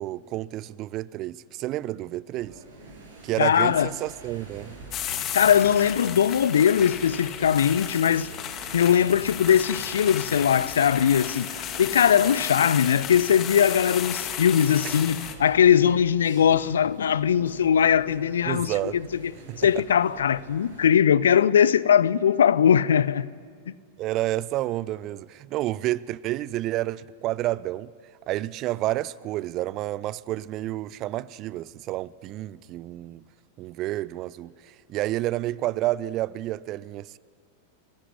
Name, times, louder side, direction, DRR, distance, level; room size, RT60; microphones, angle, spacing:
voice 1, 0.0-2.6 3.2-4.7 12.2-12.3 14.8-15.0 18.5-19.0 19.5-19.6 24.0-27.9 28.3-33.2 33.6-37.2, right 15 dB, 35° right, 0.6 m, -30 dB
sound 1, 2.3-20.9, right 3 dB, 65° right, 7.6 m, -46 dB
voice 2, 3.4-3.9 5.3-8.3 8.7-19.3 19.6-23.3 23.7-23.8, left 8 dB, 65° left, 0.6 m, -20 dB
sound 2, 4.9-15.3, left 10 dB, 35° left, 1.8 m, -34 dB
30.0 x 16.0 x 9.5 m
figure-of-eight pair, 90°, 0 cm